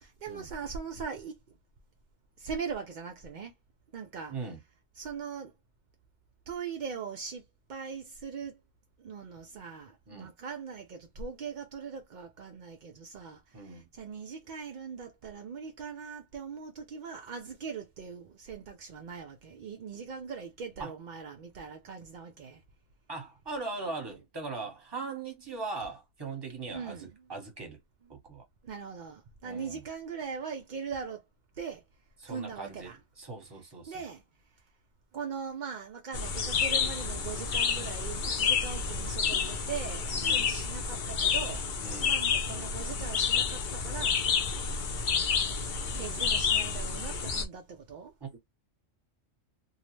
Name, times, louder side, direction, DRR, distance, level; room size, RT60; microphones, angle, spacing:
voice 1, 0.0-1.4 2.4-3.5 3.9-4.4 5.0-5.5 6.5-7.4 7.7-8.6 9.0-22.6 26.7-27.1 28.6-31.2 31.6-31.8 32.3-33.0 33.9-34.2 35.1-41.6 42.0-44.2 45.9-48.1, right 6 dB, 70° right, 0.4 m, -40 dB
voice 2, 13.5-13.9 20.8-20.9 23.1-27.8 28.1-28.4 29.4-29.8 32.2-34.0 40.2-40.5 41.8-42.1 48.2-48.4, right 3 dB, 20° right, 0.9 m, -40 dB
sound 1, 36.1-47.4, left 6 dB, 50° left, 0.6 m, -29 dB
2.7 x 2.0 x 3.0 m
omnidirectional pair, 1.3 m